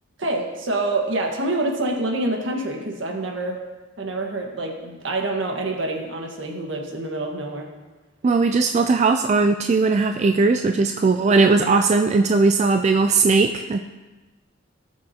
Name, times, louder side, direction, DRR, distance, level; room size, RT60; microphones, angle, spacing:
voice 1, 0.2-3.6 4.0-7.7, right 2 dB, 70° right, 1 dB, 1.5 m, -26 dB
voice 2, 8.2-13.8, right 4 dB, 35° right, 6 dB, 0.3 m, -18 dB
18.0 x 6.3 x 2.8 m, 1.2 s
head